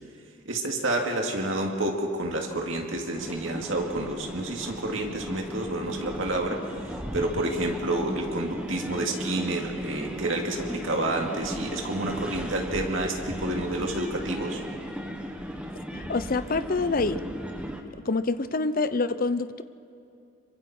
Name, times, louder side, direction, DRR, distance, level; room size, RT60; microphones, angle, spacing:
voice 1, 0.4-14.6, right 1 dB, 60° right, 1 dB, 2.5 m, -29 dB
sound 1, 3.1-17.8, equal, 5° right, 1.3 m, -36 dB
voice 2, 15.9-17.2 18.1-19.6, left 3 dB, 40° left, 12 dB, 0.6 m, -26 dB
26.5 x 23.5 x 4.4 m, 2.6 s
head